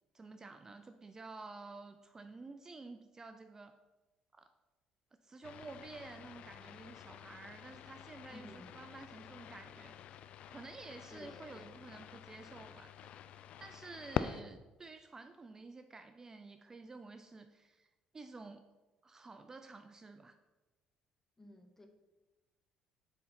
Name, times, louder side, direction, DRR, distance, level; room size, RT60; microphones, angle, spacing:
voice 1, 0.1-3.7 4.3-4.5 5.2-10.0 10.5-13.1 13.6-18.6 19.0-20.4, right 3 dB, 25° right, 8 dB, 0.4 m, -51 dB
sound 1, 5.4-14.4, left 9 dB, 65° left, 0.3 m, -46 dB
voice 2, 8.3-8.8 11.1-11.7 21.4-21.9, left 1 dB, 15° left, 5 dB, 1.0 m, -54 dB
7.8 x 3.7 x 4.3 m, 1.1 s
cardioid pair, 90°, 2 cm